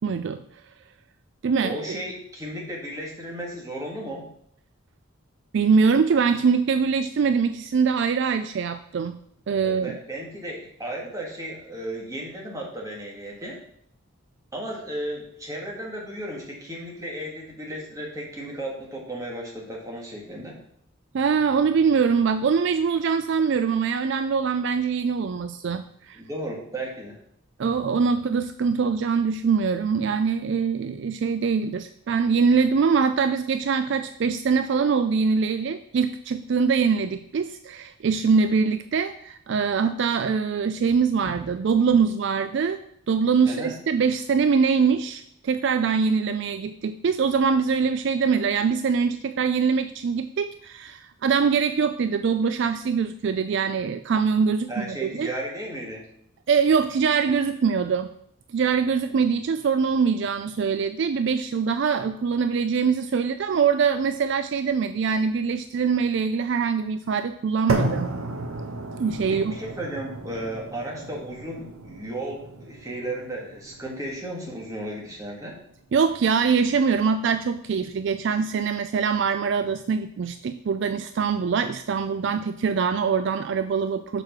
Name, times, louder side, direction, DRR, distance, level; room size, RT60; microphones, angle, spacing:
voice 1, 0.0-0.4 1.4-2.0 5.5-9.2 9.5-10.0 21.1-26.2 27.6-42.8 43.1-55.3 56.5-58.1 58.5-68.1 69.0-69.6 75.9-84.2, right 5 dB, 55° right, 10 dB, 0.3 m, -23 dB
voice 2, 1.6-4.3 9.6-13.6 14.5-20.6 26.1-27.2 43.5-43.7 54.7-56.1 59.1-59.2 69.3-75.5, right 1 dB, 15° right, -2 dB, 1.8 m, -34 dB
sound 1, 67.7-75.7, right 2 dB, 80° right, 1.0 m, -33 dB
6.5 x 4.9 x 5.9 m, 0.68 s
head